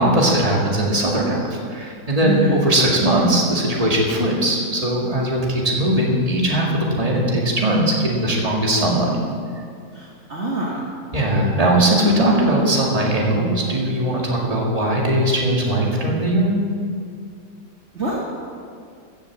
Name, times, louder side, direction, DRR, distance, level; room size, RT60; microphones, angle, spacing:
voice 1, 0.0-9.2 11.1-16.5, right 1 dB, 20° right, -2 dB, 2.2 m, -19 dB
voice 2, 2.2-2.6 9.9-10.8 17.9-18.3, right 1 dB, 45° right, -4 dB, 1.7 m, -25 dB
15.5 x 7.0 x 7.4 m, 2.3 s
omnidirectional pair, 1.8 m